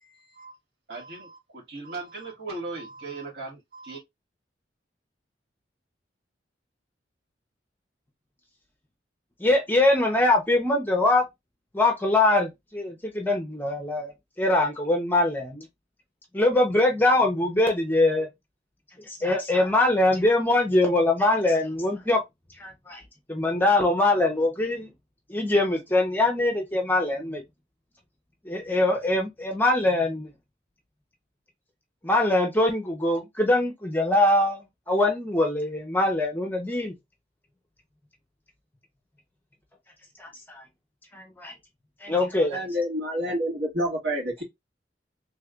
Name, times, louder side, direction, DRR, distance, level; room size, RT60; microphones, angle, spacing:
voice 1, 0.0-0.6 0.9-4.0, right 3 dB, 60° right, 1.8 m, -38 dB
voice 2, 9.4-11.2 11.7-15.7 16.3-18.3 19.0-22.2 22.6-23.0 23.3-24.9 25.3-27.4 28.5-30.3 32.0-34.6 34.9-36.9 41.1-41.5 42.0-42.6, left 2 dB, 10° left, 0.7 m, -23 dB
voice 3, 42.5-44.4, equal, 75° right, 1.9 m, -28 dB
3.2 x 3.2 x 2.4 m
head